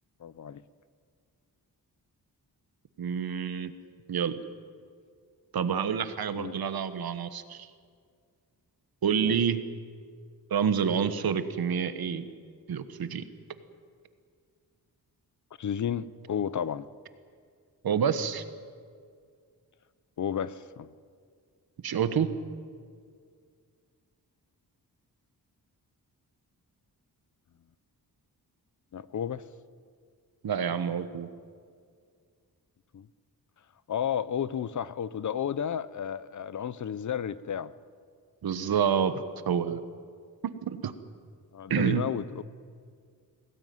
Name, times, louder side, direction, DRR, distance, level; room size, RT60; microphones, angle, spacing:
voice 1, 0.2-0.6 6.3-6.6 9.2-9.4 15.6-16.9 20.2-20.9 28.9-29.4 32.9-33.1 33.9-37.7 41.5-42.4, left 8 dB, 50° left, 17 dB, 0.6 m, -32 dB
voice 2, 3.0-3.7 4.1-4.3 5.5-7.7 9.0-9.6 10.5-12.2 12.7-13.2 17.8-18.4 21.8-22.3 30.4-31.3 38.4-39.8 40.4-40.9 41.7-42.1, right 7 dB, 70° right, 11 dB, 1.3 m, -28 dB
21.5 x 17.5 x 9.4 m, 2.1 s
wide cardioid pair, 170°, 38 cm